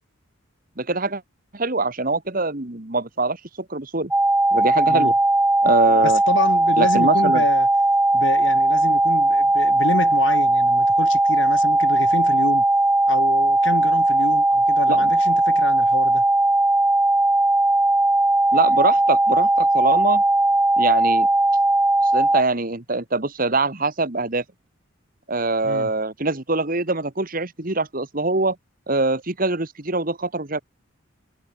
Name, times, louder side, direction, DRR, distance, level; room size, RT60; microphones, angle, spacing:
voice 1, 0.8-1.2 1.5-3.4 3.7-4.1 4.5-5.1 5.6-6.2 6.8-7.4 14.9-15.1 18.5-20.2 20.8-21.3 22.1-24.4 25.3-28.6 28.9-30.6, right 3 dB, 40° right, 1.7 m, -23 dB
sound 1, 4.1-22.4, right 2 dB, 5° right, 0.3 m, -18 dB
voice 2, 6.0-7.7 8.1-12.6 13.1-16.2 25.6-25.9, left 2 dB, 60° left, 1.4 m, -28 dB
head